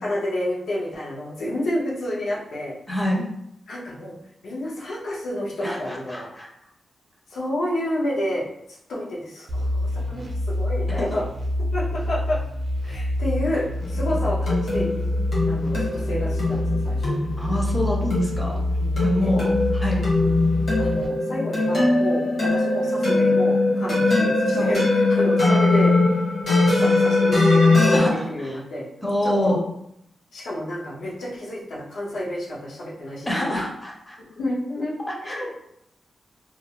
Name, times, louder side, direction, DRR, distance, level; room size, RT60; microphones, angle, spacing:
voice 1, 0.0-2.7 3.7-4.1 4.4-6.3 7.3-11.2 11.7-12.4 12.8-15.1 15.5-17.2 18.8-19.5 20.2-20.5 20.8-25.9 26.5-28.8 29.2-29.6 30.3-33.6 34.3-34.9 35.2-35.5, left 1 dB, 85° left, -5 dB, 0.7 m, -30 dB
voice 2, 2.9-3.3 5.6-6.5 11.0-11.1 17.4-18.6 19.0-19.4 19.7-20.0 24.5-24.7 27.9-28.2 29.0-29.6 33.3-34.2 35.3-35.6, left 1 dB, 15° left, -2 dB, 0.5 m, -26 dB
sound 1, 9.5-21.1, left 1 dB, 50° right, 0.5 m, -27 dB
sound 2, 13.8-28.0, left 2 dB, 65° left, 1.3 m, -21 dB
2.4 x 2.0 x 2.9 m, 0.76 s
wide cardioid pair, 145°, 0 cm